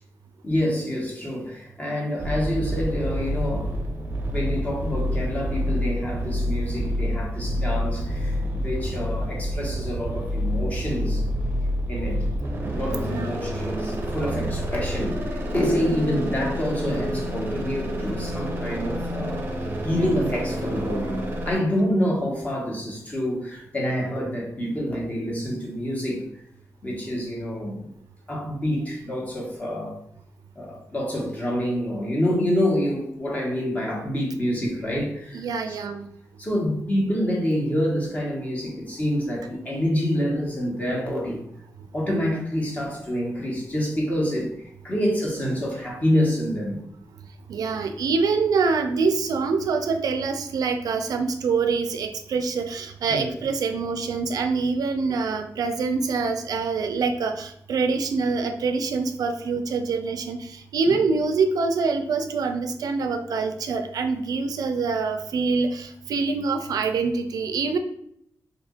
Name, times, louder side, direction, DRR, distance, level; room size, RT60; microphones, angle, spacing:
voice 1, 0.4-3.8 4.3-11.3 11.9-12.2 12.7-19.4 19.8-21.2 21.4-26.3 26.8-27.9 28.3-30.0 30.5-35.8 36.4-41.4 41.9-46.8 53.1-53.3 60.9-61.0, equal, 25° left, -2 dB, 1.0 m, -27 dB
sound 1, 2.2-21.6, equal, 35° right, 0.6 m, -28 dB
voice 2, 35.3-36.1 47.5-67.8, right 4 dB, 85° right, 6 dB, 0.4 m, -25 dB
2.8 x 2.5 x 3.6 m, 0.70 s
wide cardioid pair, 145°, 6 cm